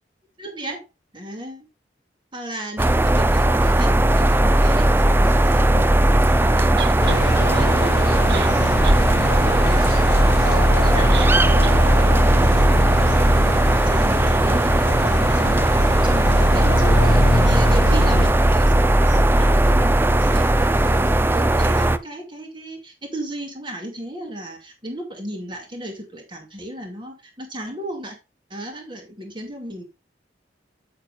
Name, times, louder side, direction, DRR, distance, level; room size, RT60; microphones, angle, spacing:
voice 1, 0.4-0.8 1.1-1.7 2.3-28.2 28.5-29.8, right 1 dB, 25° right, 2.5 m, -35 dB
sound 1, 2.8-22.0, right 1 dB, 10° right, 0.4 m, -17 dB
sound 2, 6.8-7.2 8.0-8.1 8.3-9.0 9.4-9.5 11.1-11.4 11.6-11.8, right 7 dB, 65° right, 0.7 m, -32 dB
sound 3, 7.0-18.3, left 3 dB, 60° left, 0.6 m, -27 dB
8.8 x 8.8 x 2.4 m
head